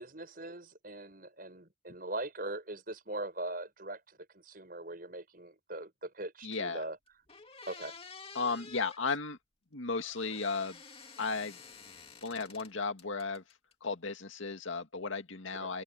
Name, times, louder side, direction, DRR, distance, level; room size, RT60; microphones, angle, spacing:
voice 1, 0.0-7.0 7.7-7.9 15.6-15.7, right 2 dB, 45° right, 6.5 m, -41 dB
voice 2, 6.4-6.8 8.3-9.4 9.7-10.8 11.2-11.6 12.2-13.4 13.8-15.8, left 4 dB, 90° left, 2.0 m, -35 dB
sound 1, 6.8-6.9 7.3-9.0 9.9-12.7 13.0-13.7, left 5 dB, 30° left, 2.6 m, -51 dB
open air
head